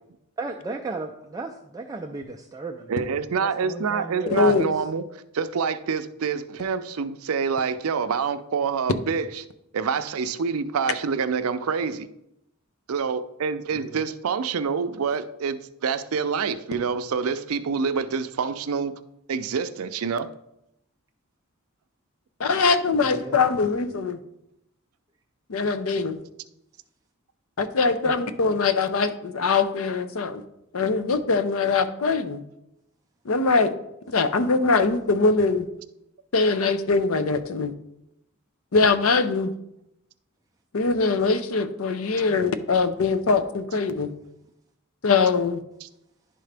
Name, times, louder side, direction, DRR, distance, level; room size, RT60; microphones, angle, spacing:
voice 1, 0.4-3.0 3.3-4.7 13.7-14.0 23.0-23.4 28.1-28.2 42.3-42.4, right 3 dB, 15° right, 2 dB, 0.3 m, -35 dB
voice 2, 2.9-5.0 5.3-9.4 9.7-12.1 12.9-18.9 19.3-20.3 45.8-45.9, right 5 dB, 80° right, 12 dB, 0.5 m, -27 dB
voice 3, 4.3-4.7 22.4-24.2 25.5-26.2 27.6-30.4 30.7-32.4 33.2-33.7 34.1-35.7 36.3-37.7 38.7-39.5 40.7-44.1 45.0-45.6, left 4 dB, 70° left, 11 dB, 0.6 m, -22 dB
11.0 x 3.8 x 3.3 m, 0.81 s
head